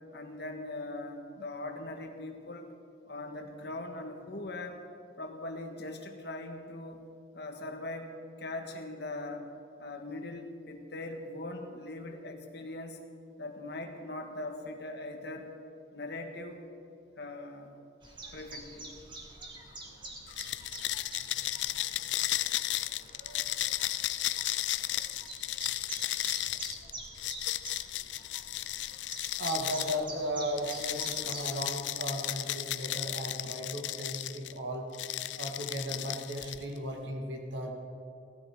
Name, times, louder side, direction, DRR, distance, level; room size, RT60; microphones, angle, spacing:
voice 1, 0.1-2.7 3.1-4.8 5.2-7.0 7.3-8.1 8.4-9.5 9.8-13.0 13.4-15.5 15.9-16.6 17.2-17.7 18.3-18.9, left 2 dB, 65° left, 4 dB, 1.6 m, -40 dB
Chirp tweet, 18.0-31.6, right 2 dB, 25° right, 2.0 m, -47 dB
sound 1, 20.3-30.0 30.6-34.5 34.9-36.8, left 14 dB, 80° left, 0.5 m, -34 dB
voice 2, 23.0-23.7 24.5-25.0 26.8-26.9 29.4-34.9 35.4-37.7, equal, 75° right, 1 dB, 2.0 m, -36 dB
18.0 x 13.0 x 4.8 m, 2.5 s
head